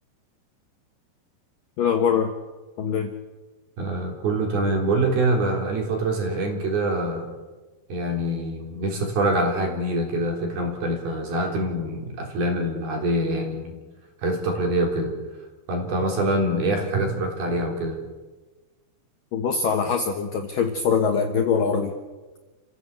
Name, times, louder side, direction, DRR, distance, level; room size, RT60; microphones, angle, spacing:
voice 1, 1.8-2.3 2.8-3.1 19.3-21.9, left 6 dB, 65° left, 4 dB, 2.2 m, -23 dB
voice 2, 3.8-7.3 7.9-13.8 14.2-15.1 15.7-18.0, right 1 dB, 55° right, 2 dB, 5.3 m, -25 dB
28.5 x 16.0 x 8.3 m, 1.2 s
omnidirectional pair, 5.6 m